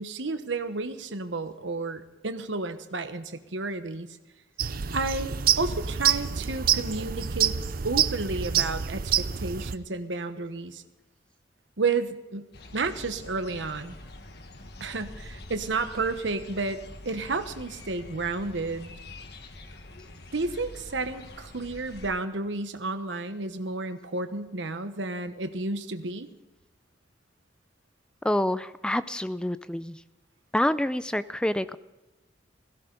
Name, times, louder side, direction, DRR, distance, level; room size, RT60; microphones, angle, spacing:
voice 1, 0.0-4.1 4.9-7.6 7.8-10.8 11.8-14.0 14.8-16.8 17.0-18.9 20.3-26.3, right 3 dB, 80° right, 10 dB, 1.1 m, -31 dB
sound 1, 4.6-9.8, right 9 dB, 50° right, 0.5 m, -27 dB
sound 2, 12.5-22.1, left 2 dB, 60° left, 1.5 m, -45 dB
voice 2, 28.2-30.0 30.5-31.8, left 1 dB, 5° left, 14 dB, 0.4 m, -27 dB
16.5 x 16.5 x 4.0 m, 1.1 s
head